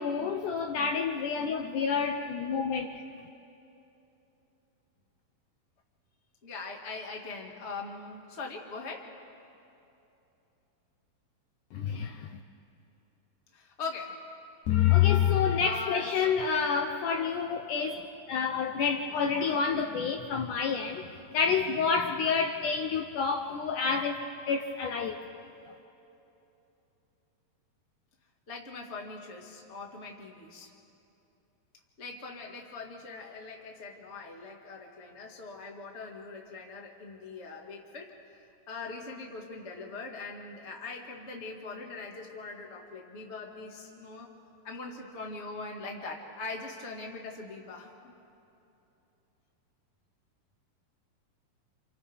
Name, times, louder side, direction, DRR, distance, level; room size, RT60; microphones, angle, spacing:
voice 1, 0.0-3.0 11.7-12.3 14.7-21.1 21.3-25.2, left 6 dB, 75° left, 4 dB, 2.0 m, -28 dB
voice 2, 6.4-9.1 13.5-14.3 15.6-16.4 28.5-30.7 32.0-44.3 44.6-48.1, left 3 dB, 30° left, 0 dB, 1.2 m, -41 dB
29.0 x 29.0 x 3.5 m, 2.9 s
omnidirectional pair, 4.3 m